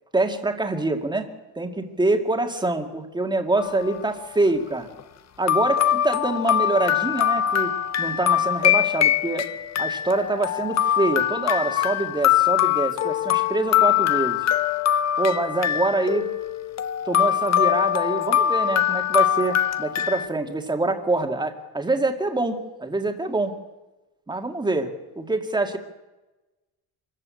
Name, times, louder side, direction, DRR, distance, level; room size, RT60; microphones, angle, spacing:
voice 1, 0.1-1.3 1.6-4.9 5.4-7.7 8.0-9.5 9.8-14.4 15.2-16.3 17.1-23.5 24.3-25.8, right 2 dB, 10° right, 5 dB, 2.0 m, -25 dB
sound 1, 3.6-4.1 5.0-5.1 5.5-20.3, left 10 dB, 40° left, 0.8 m, -23 dB
25.5 x 14.0 x 8.4 m, 1.1 s
cardioid pair, 155°, 39 cm